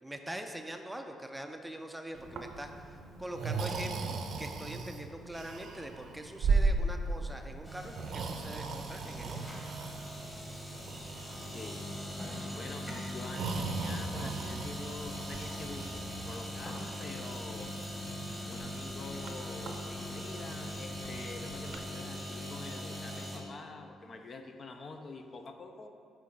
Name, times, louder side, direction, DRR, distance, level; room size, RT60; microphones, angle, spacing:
voice 1, 0.0-9.6, right 1 dB, 5° right, 5 dB, 0.4 m, -43 dB
Breathing, 2.1-21.8, right 3 dB, 70° right, 0.6 m, -38 dB
sound 1, 7.6-23.4, equal, 10° left, 1.5 m, -41 dB
voice 2, 11.5-12.0 12.3-25.9, left 3 dB, 45° left, 5 dB, 0.5 m, -46 dB
7.4 x 4.6 x 3.7 m, 2.4 s
cardioid pair, 90°, 0 cm